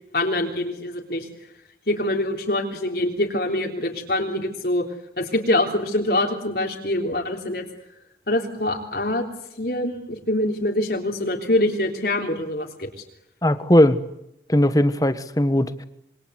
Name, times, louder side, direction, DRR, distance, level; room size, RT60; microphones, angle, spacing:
voice 1, 0.1-1.3 1.9-4.8 5.2-7.6 8.3-9.3 9.6-12.9, left 1 dB, 60° left, 3.5 m, -24 dB
voice 2, 13.4-14.0 14.5-15.8, left 1 dB, 20° left, 1.4 m, -18 dB
27.0 x 24.5 x 8.2 m
head